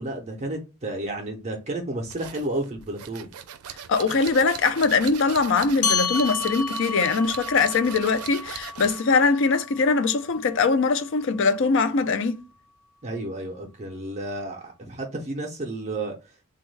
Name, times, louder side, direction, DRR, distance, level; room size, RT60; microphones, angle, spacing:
voice 1, 0.0-3.3 13.0-16.1, right 2 dB, 30° right, 0.5 m, -31 dB
sound 1, 2.1-9.1, right 9 dB, 85° right, 0.4 m, -39 dB
voice 2, 3.9-12.4, left 4 dB, 55° left, 0.4 m, -22 dB
sound 2, 5.8-10.6, left 5 dB, 90° left, 0.7 m, -31 dB
3.4 x 2.2 x 3.2 m
head